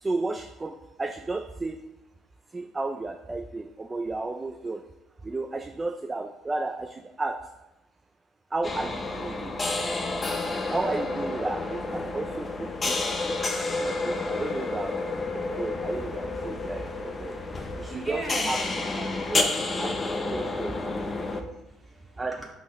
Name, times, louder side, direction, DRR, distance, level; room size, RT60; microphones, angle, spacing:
voice 1, 0.0-1.9 2.5-4.8 5.2-7.5 8.5-9.5 10.7-13.0 13.6-17.4 17.8-18.6 19.3-19.5 19.8-20.8 22.2-22.4, right 3 dB, 15° right, 6 dB, 0.4 m, -33 dB
sound 1, 8.6-21.4, left 3 dB, 25° left, 0.6 m, -30 dB
voice 2, 17.7-19.3 20.9-22.5, right 1 dB, ahead, -5 dB, 2.0 m, -41 dB
11.0 x 4.0 x 3.1 m, 0.94 s
cardioid pair, 125°, 0 cm